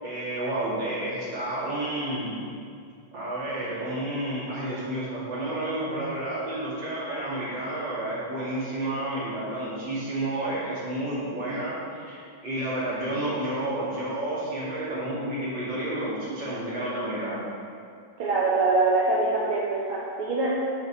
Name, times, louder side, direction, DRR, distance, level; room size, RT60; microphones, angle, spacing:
voice 1, 0.0-2.3 3.1-17.4, right 1 dB, 60° right, -9 dB, 3.2 m, -30 dB
voice 2, 18.2-20.5, right 3 dB, 85° right, -6 dB, 1.9 m, -24 dB
6.9 x 5.4 x 6.5 m, 2.3 s
omnidirectional pair, 2.3 m